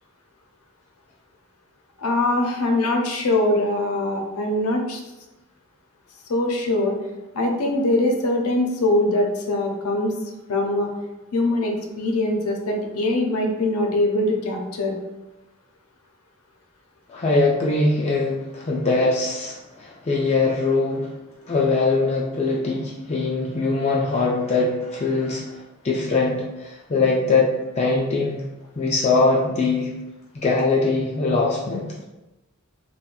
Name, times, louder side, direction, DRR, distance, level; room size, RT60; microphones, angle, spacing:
voice 1, 2.0-5.0 6.3-7.0 7.3-10.1 10.5-10.9 11.3-15.0, left 1 dB, 80° left, 2 dB, 0.5 m, -22 dB
voice 2, 17.1-21.2 21.5-25.6 25.8-28.5 28.8-29.9 30.3-31.9, left 3 dB, 30° left, -3 dB, 0.3 m, -22 dB
2.4 x 2.2 x 3.6 m, 1.0 s
head